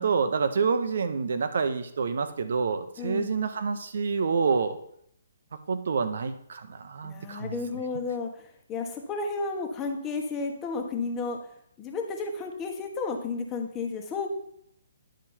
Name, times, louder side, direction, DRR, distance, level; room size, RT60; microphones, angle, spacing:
voice 1, 0.0-4.8 5.7-7.6, right 5 dB, 65° right, 10 dB, 0.9 m, -27 dB
voice 2, 3.0-3.4 7.0-11.4 11.8-14.3, left 4 dB, 20° left, 2 dB, 1.3 m, -32 dB
10.5 x 5.2 x 4.4 m, 0.70 s
figure-of-eight pair, 135°, 0 cm